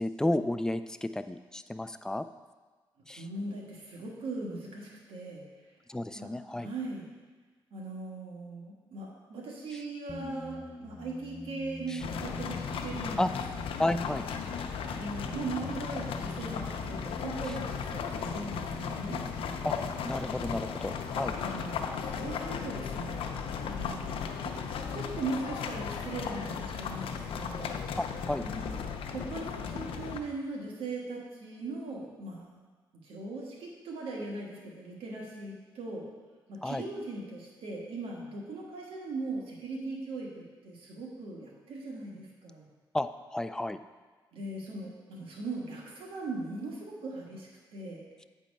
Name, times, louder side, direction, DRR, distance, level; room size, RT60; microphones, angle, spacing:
voice 1, 0.0-2.3 3.1-3.3 5.9-6.7 11.9-12.0 13.2-13.3 13.8-14.3 17.5-17.6 19.6-19.8 20.0-21.4 28.0-28.5 36.6-36.8 42.9-43.8, left 1 dB, 5° left, 10 dB, 0.4 m, -32 dB
voice 2, 3.2-5.4 6.1-7.1 7.7-13.2 13.8-14.0 14.9-19.3 21.3-24.5 24.9-27.7 28.4-28.6 29.1-32.6 33.0-36.0 36.5-42.6 44.3-48.3, right 3 dB, 85° right, -2 dB, 1.5 m, -39 dB
sound 1, 10.1-23.3, left 2 dB, 25° left, 0.8 m, -46 dB
sound 2, 12.0-30.2, left 6 dB, 85° left, 0.6 m, -36 dB
8.3 x 4.5 x 5.3 m, 1.3 s
cardioid pair, 75°, 9 cm